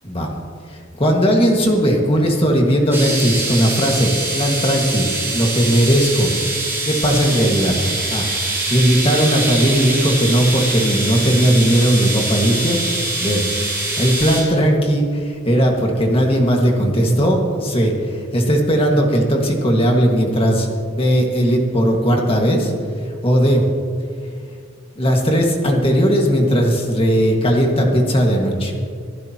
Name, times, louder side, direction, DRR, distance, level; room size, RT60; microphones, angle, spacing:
voice 1, 0.7-6.3 6.9-7.7 8.1-8.3 8.7-12.8 13.2-13.4 14.0-20.7 20.9-22.7 23.2-23.7 25.0-28.7, equal, 25° left, 1 dB, 1.9 m, -17 dB
sound 1, 2.9-14.4, right 2 dB, 10° right, 4.5 m, -24 dB
25.0 x 12.0 x 3.0 m, 2.2 s
head